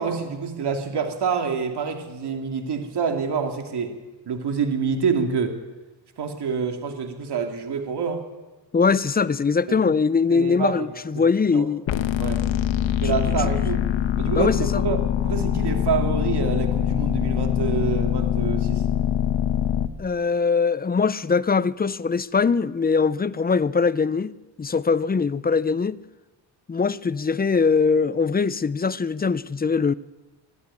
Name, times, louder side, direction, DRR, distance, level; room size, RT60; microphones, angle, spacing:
voice 1, 0.0-4.0 4.3-5.6 6.2-8.3 9.7-9.9 10.3-10.9 11.1-11.2 11.5-11.7 12.2-12.4 13.0-13.8 14.2-18.8, right 6 dB, 55° right, 2.6 m, -27 dB
voice 2, 8.7-11.8 12.9-13.1 14.3-14.8 20.0-26.0 26.7-29.9, left 5 dB, 20° left, 0.6 m, -22 dB
sound 1, 11.9-19.9, left 10 dB, 70° left, 1.3 m, -23 dB
22.5 x 12.5 x 9.8 m
cardioid pair, 100°, 47 cm